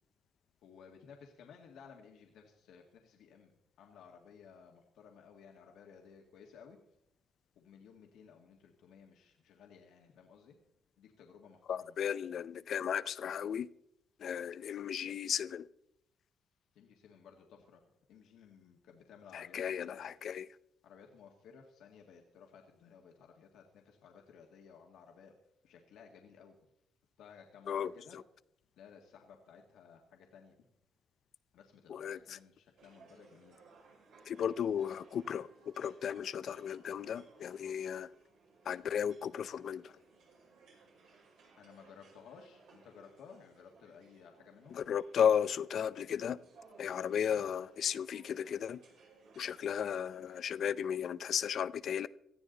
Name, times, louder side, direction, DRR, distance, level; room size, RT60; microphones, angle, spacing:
voice 1, 0.6-3.5 3.8-6.8 7.6-10.6 11.0-12.0 16.7-17.8 18.1-20.1 20.8-25.3 25.6-26.6 27.2-28.2 28.8-30.6 31.5-33.6 41.6-44.8 47.3-47.4, left 6 dB, 80° left, 1.9 m, -57 dB
voice 2, 11.7-13.7 14.2-15.7 19.3-20.5 27.7-28.2 31.9-32.2 34.3-38.1 38.7-39.9 44.7-46.4 46.8-48.8 49.4-52.1, left 8 dB, 60° left, 0.6 m, -35 dB
sound 1, 32.8-50.6, right 4 dB, 85° right, 5.8 m, -62 dB
18.5 x 13.5 x 4.0 m
cardioid pair, 90°, 0 cm